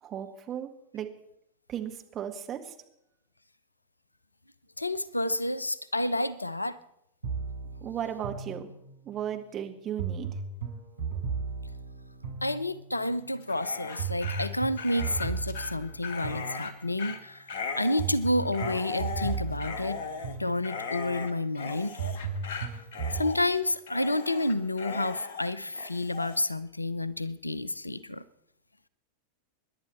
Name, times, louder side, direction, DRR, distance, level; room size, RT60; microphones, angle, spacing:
voice 1, 0.0-1.1 1.7-2.7 7.8-8.7 9.1-10.3, right 9 dB, 30° right, 5 dB, 1.9 m, -36 dB
voice 2, 4.8-6.8 12.4-20.0 20.4-22.0 23.1-28.2, left 1 dB, 85° left, 19 dB, 0.6 m, -30 dB
sound 1, 7.2-9.1 10.0-13.0 14.0-17.1 18.0-21.0 22.0-23.4, right 5 dB, 80° right, 3.7 m, -36 dB
Dog, 13.4-26.4, left 5 dB, 55° left, 1.5 m, -38 dB
26.0 x 11.0 x 4.3 m, 0.79 s
figure-of-eight pair, 90°, 0 cm